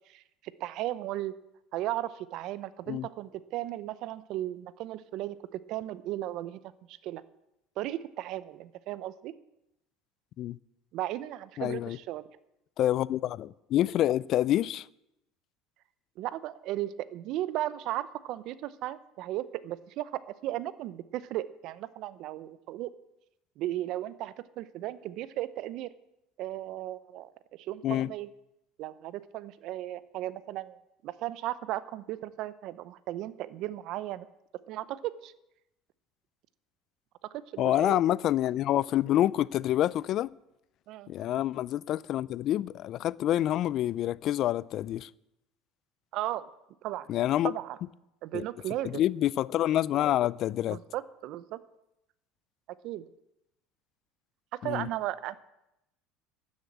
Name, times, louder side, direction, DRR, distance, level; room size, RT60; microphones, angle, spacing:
voice 1, 0.6-1.3 1.7-6.6 6.9-7.2 7.8-9.3 10.9-12.3 16.2-22.9 23.6-25.9 26.4-28.3 28.8-30.8 31.0-34.3 34.7-35.3 37.5-38.0 40.9-41.1 46.1-46.5 46.8-47.1 47.4-47.8 48.2-49.0 50.7-51.6 52.8-53.0 54.6-55.4, right 14 dB, 55° right, 0.7 m, -36 dB
voice 2, 11.6-12.0 12.8-14.9 27.8-28.1 37.6-40.3 41.1-45.1 47.1-47.5 48.3-48.4 48.8-50.8 54.6-54.9, left 13 dB, 45° left, 0.4 m, -27 dB
12.5 x 7.3 x 8.7 m
cardioid pair, 155°, 0 cm